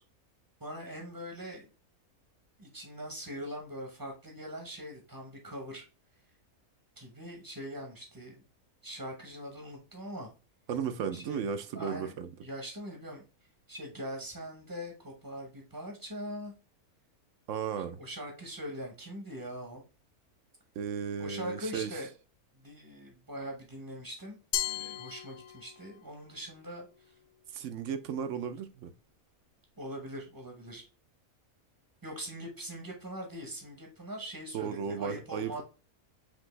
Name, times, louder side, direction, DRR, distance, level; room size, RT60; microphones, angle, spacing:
voice 1, 0.6-1.7 2.6-5.8 7.0-8.4 8.8-10.3 11.1-11.4 11.7-13.2 13.7-16.5 18.0-19.8 21.2-22.1 22.5-24.4 24.6-27.1 29.8-30.8 32.0-35.6, equal, 15° right, 0.8 m, -42 dB
voice 2, 10.7-12.3 17.5-18.0 20.8-21.9 27.5-28.9 34.5-35.6, right 7 dB, 65° right, 0.8 m, -35 dB
Glass, 24.5-26.0, left 11 dB, 85° left, 1.1 m, -35 dB
5.2 x 2.9 x 3.1 m
omnidirectional pair, 1.5 m